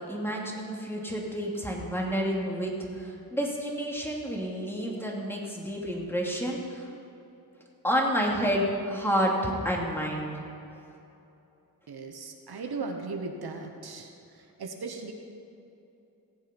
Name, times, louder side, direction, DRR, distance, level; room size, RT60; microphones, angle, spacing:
voice 1, 0.1-6.9 7.8-10.3, equal, 5° left, -2 dB, 2.6 m, -29 dB
voice 2, 11.9-15.1, right 4 dB, 70° right, 3 dB, 1.3 m, -37 dB
17.5 x 7.6 x 5.4 m, 2.8 s
cardioid pair, 60°, 39 cm